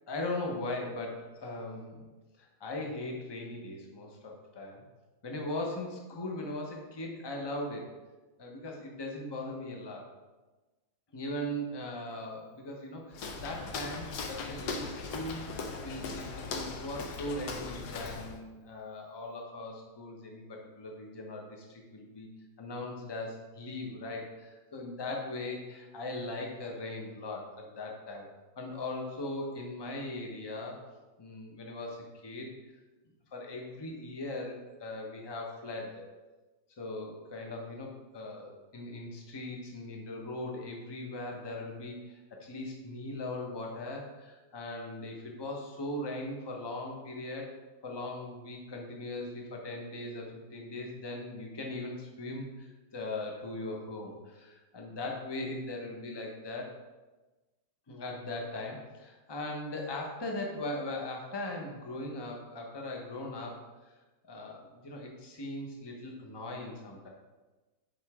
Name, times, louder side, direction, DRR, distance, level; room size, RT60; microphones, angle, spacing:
voice 1, 0.1-2.1 2.4-4.8 5.2-7.9 8.4-10.0 11.1-15.4 15.8-22.3 22.6-28.2 28.6-30.8 31.2-32.6 33.3-36.0 36.8-47.5 47.8-56.7 57.9-63.6 64.3-67.1, left 2 dB, 20° left, 0 dB, 0.6 m, -39 dB
Walk footsteps, 13.1-18.4, left 4 dB, 65° left, 1.2 m, -39 dB
7.9 x 5.4 x 3.6 m, 1.2 s
omnidirectional pair, 2.1 m